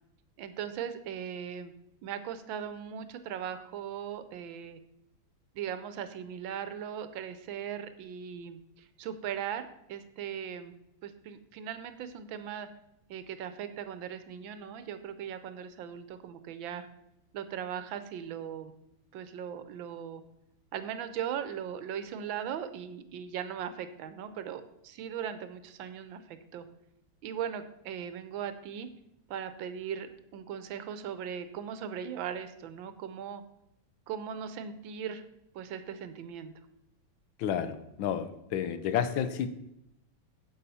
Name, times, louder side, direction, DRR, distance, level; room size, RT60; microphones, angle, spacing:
voice 1, 0.4-1.7 2.0-4.8 5.5-10.7 11.0-12.7 13.1-16.9 17.3-18.7 19.1-20.2 20.7-26.7 27.2-28.9 29.3-33.4 34.1-35.2 35.5-36.5, right 8 dB, 80° right, 11 dB, 1.5 m, -39 dB
voice 2, 37.4-39.5, left 9 dB, 80° left, 11 dB, 1.5 m, -31 dB
9.6 x 7.1 x 4.1 m, 0.83 s
omnidirectional pair, 2.1 m